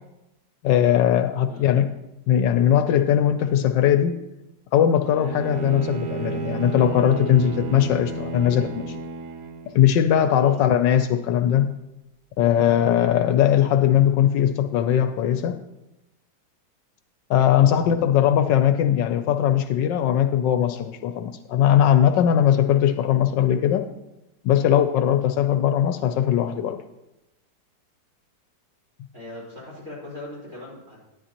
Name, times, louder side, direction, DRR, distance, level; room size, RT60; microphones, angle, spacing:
voice 1, 0.6-1.9 2.3-4.2 4.7-8.9 9.7-11.7 12.4-15.6 17.3-23.9 24.4-26.8, left 10 dB, 75° left, 9 dB, 1.2 m, -20 dB
Bowed string instrument, 5.0-9.9, right 5 dB, 60° right, 1.0 m, -32 dB
voice 2, 29.1-31.0, left 2 dB, 45° right, -6 dB, 4.3 m, -39 dB
12.5 x 9.6 x 2.9 m, 0.93 s
omnidirectional pair, 2.0 m